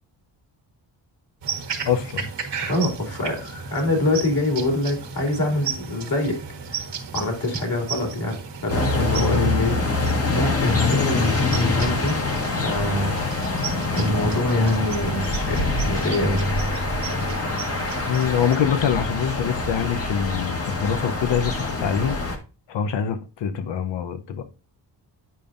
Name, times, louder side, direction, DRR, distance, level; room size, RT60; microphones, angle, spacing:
sound 1, 1.4-18.6, right 5 dB, 70° right, 1.4 m, -35 dB
voice 1, 1.9-2.3 18.0-22.2 22.7-24.4, left 8 dB, 80° left, 0.9 m, -24 dB
voice 2, 2.7-6.4 6.7-6.9 7.1-8.3 8.6-9.8 10.3-12.2 12.5-13.2 13.9-16.6, left 1 dB, 55° left, 2.8 m, -24 dB
sound 2, 8.7-22.4, left 3 dB, 35° left, 1.3 m, -25 dB
9.1 x 5.3 x 2.5 m
wide cardioid pair, 120°, 43 cm